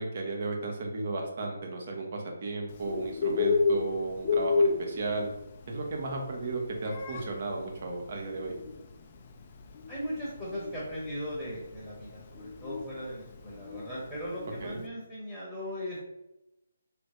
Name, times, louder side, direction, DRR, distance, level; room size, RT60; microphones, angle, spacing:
voice 1, 0.0-5.3 5.7-8.5 14.6-14.8, right 2 dB, 50° right, 1 dB, 0.8 m, -34 dB
Bird, 2.7-14.8, left 4 dB, 35° left, 0.4 m, -32 dB
voice 2, 9.9-16.1, equal, ahead, -9 dB, 1.0 m, -38 dB
3.1 x 3.1 x 2.6 m, 0.90 s
figure-of-eight pair, 150°, 0 cm